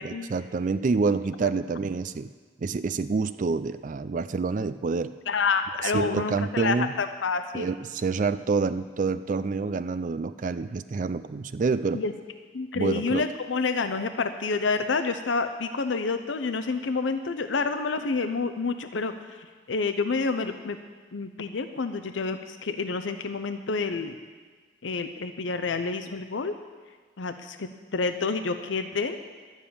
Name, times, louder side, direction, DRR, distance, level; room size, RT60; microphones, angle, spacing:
voice 1, 0.0-2.3 2.6-5.1 5.8-6.9 7.5-12.0 12.7-13.2, right 4 dB, 45° right, 13 dB, 0.4 m, -27 dB
voice 2, 5.3-7.7 11.9-12.1 12.5-20.8 21.1-24.2 24.8-26.5 27.2-29.2, left 4 dB, 90° left, 9 dB, 0.6 m, -28 dB
11.5 x 7.3 x 8.6 m, 1.5 s
head